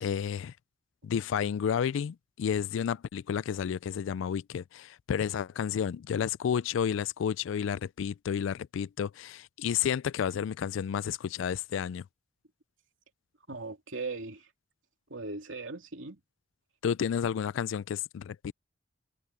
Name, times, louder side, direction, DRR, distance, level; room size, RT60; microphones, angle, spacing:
voice 1, 0.0-0.5 1.0-12.0 16.8-18.5, left 8 dB, 70° left, 0.3 m, -31 dB
voice 2, 13.5-14.5 15.1-16.2, right 3 dB, 70° right, 3.1 m, -38 dB
open air
head